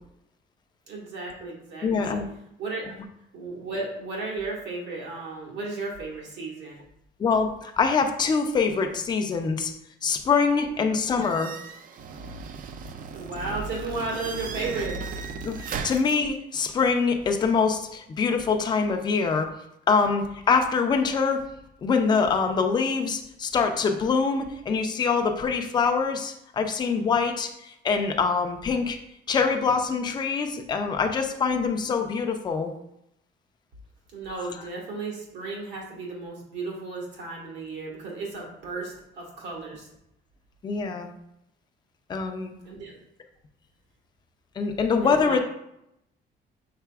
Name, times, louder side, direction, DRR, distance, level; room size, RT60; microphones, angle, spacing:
voice 1, 0.9-2.2 2.6-2.9 3.3-6.8 13.1-15.0 34.1-39.9 42.6-43.0 45.0-45.4, right 3 dB, 75° right, -2 dB, 1.5 m, -34 dB
voice 2, 1.8-2.3 7.2-9.7 10.0-11.5 15.4-19.5 19.9-21.4 21.8-29.0 29.3-32.7 40.6-41.1 42.1-42.5 44.6-45.4, left 5 dB, 25° left, 5 dB, 0.4 m, -24 dB
sound 1, 11.2-16.1, right 5 dB, 50° right, 0.4 m, -36 dB
5.7 x 4.0 x 2.3 m, 0.81 s
cardioid pair, 160°, 18 cm